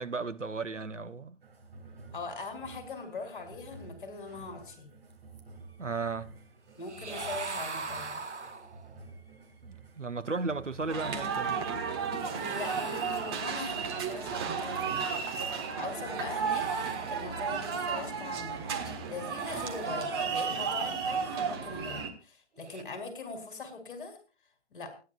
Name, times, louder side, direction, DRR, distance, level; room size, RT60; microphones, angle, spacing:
voice 1, 0.0-1.4 5.8-6.3 9.6-11.6 18.8-18.9, right 4 dB, 90° right, 1.1 m, -35 dB
sound 1, 1.4-11.3, right 3 dB, 55° right, 3.1 m, -52 dB
voice 2, 2.1-4.9 6.8-8.2 12.5-15.1 15.8-16.7 17.1-24.2 24.7-24.9, left 4 dB, 45° left, 3.8 m, -41 dB
sound 2, 6.8-9.0 12.2-13.9 16.3-17.8 19.2-20.5 22.6-22.8, right 4 dB, 70° right, 1.4 m, -41 dB
sound 3, 10.9-22.1, right 6 dB, 20° right, 1.5 m, -33 dB
28.5 x 10.0 x 2.4 m
figure-of-eight pair, 145°, 36 cm